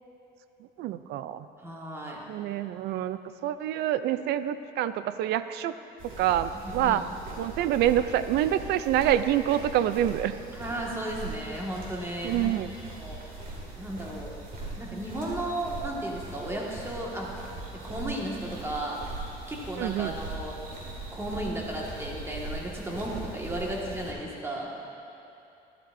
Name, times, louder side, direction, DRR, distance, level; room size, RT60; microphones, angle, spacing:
voice 1, 0.8-1.5 2.3-3.2 3.4-5.7 6.2-7.0 7.4-10.3 12.2-12.7 19.8-20.1, right 11 dB, 75° right, 13 dB, 0.4 m, -26 dB
voice 2, 1.6-2.2 6.5-7.0 10.5-12.5 13.0-13.2 13.8-14.3 14.8-17.3 17.8-19.0 19.5-20.6 21.1-24.7, right 1 dB, 15° right, -3 dB, 1.8 m, -34 dB
sound 1, 6.0-24.1, right 2 dB, 55° right, 2.5 m, -40 dB
12.5 x 12.0 x 2.6 m, 2.8 s
cardioid pair, 110°, 17 cm